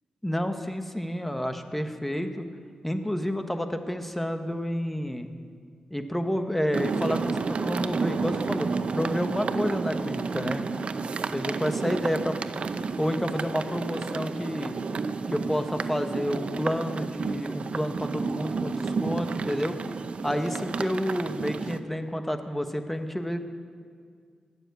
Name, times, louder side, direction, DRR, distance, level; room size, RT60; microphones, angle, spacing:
voice 1, 0.2-2.5 2.8-5.3 5.9-10.6 11.3-12.7 13.0-14.7 15.3-19.8 20.2-23.5, equal, 5° left, 7 dB, 1.1 m, -30 dB
sound 1, 6.7-21.8, right 4 dB, 60° right, 0.7 m, -31 dB
19.5 x 7.2 x 8.2 m, 2.1 s
cardioid pair, 85°, 2 cm